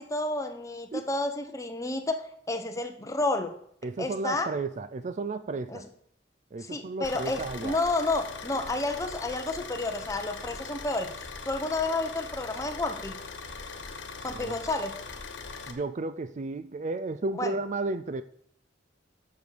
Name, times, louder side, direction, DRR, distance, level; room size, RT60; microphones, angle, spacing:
voice 1, 0.0-3.5 4.0-4.5 5.7-5.8 6.7-13.2 14.2-14.9 17.4-17.5, left 2 dB, 15° left, 6 dB, 1.0 m, -30 dB
voice 2, 3.8-5.9 6.5-7.8 14.3-14.6 15.7-18.2, right 3 dB, 40° right, 13 dB, 0.4 m, -33 dB
Car / Idling, 7.0-15.7, left 4 dB, 80° left, 1.3 m, -41 dB
7.9 x 6.8 x 6.8 m, 0.66 s
head